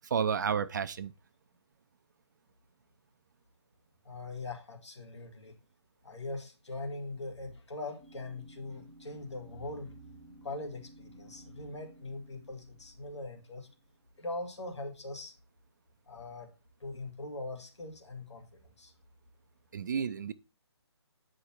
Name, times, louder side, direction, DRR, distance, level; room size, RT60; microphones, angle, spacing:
voice 1, 0.1-1.1 19.7-20.3, right 7 dB, 40° right, 0.5 m, -31 dB
voice 2, 4.0-5.5 6.0-13.7 14.2-15.3 16.1-16.5 16.8-18.5 18.8-18.9, left 2 dB, 80° left, 2.4 m, -41 dB
sound 1, 8.0-13.8, right 1 dB, 5° left, 1.0 m, -56 dB
9.2 x 5.1 x 4.4 m
hypercardioid pair, 155°, 15 cm